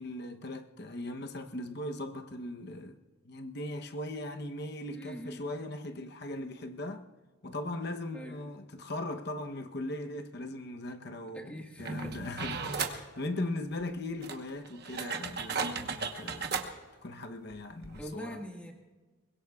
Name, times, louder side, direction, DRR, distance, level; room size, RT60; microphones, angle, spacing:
voice 1, 0.0-3.0 3.2-7.0 7.4-16.6 17.0-18.4, left 1 dB, 50° left, 0.9 m, -39 dB
voice 2, 4.9-5.4 8.1-8.4 11.3-12.2 12.6-12.7 18.0-18.7, equal, 5° left, 1.7 m, -43 dB
sound 1, 11.8-13.0 13.8-13.9 14.2-16.7 17.5-17.6 17.8-18.0, right 5 dB, 50° right, 1.1 m, -35 dB
23.5 x 21.0 x 2.4 m
head